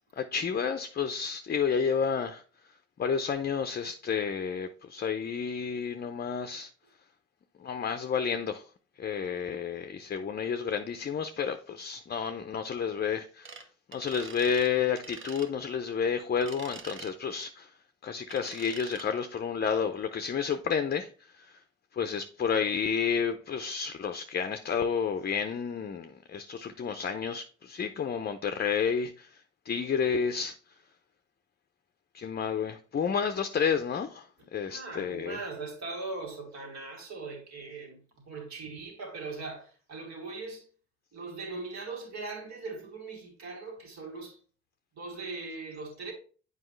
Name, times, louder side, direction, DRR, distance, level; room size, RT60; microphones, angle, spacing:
voice 1, 0.2-2.4 3.0-6.7 7.6-8.6 9.0-13.6 13.9-17.7 18.0-21.6 21.9-30.6 32.1-35.5, left 6 dB, 35° left, 0.6 m, -31 dB
sound 1, 13.4-13.6 13.9-14.7 15.0-15.5 16.4-17.1 18.3-19.1, right 5 dB, 40° right, 0.9 m, -45 dB
voice 2, 34.6-40.7 41.1-44.4 45.0-46.1, right 3 dB, 65° right, 2.6 m, -40 dB
7.9 x 4.8 x 3.1 m
cardioid pair, 90°, 30 cm